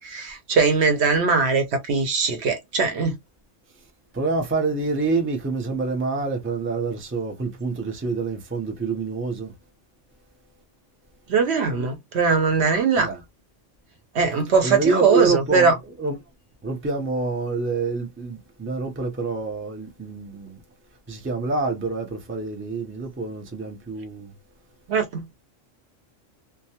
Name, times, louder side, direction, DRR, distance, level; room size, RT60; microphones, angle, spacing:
voice 1, 0.0-3.2 11.3-13.1 14.1-15.7 24.9-25.3, right 4 dB, 65° right, 0.9 m, -21 dB
voice 2, 4.1-9.5 13.0-13.2 14.6-16.2 16.6-20.6 21.1-24.3, right 4 dB, 15° right, 0.4 m, -27 dB
2.3 x 2.2 x 2.7 m
omnidirectional pair, 1.3 m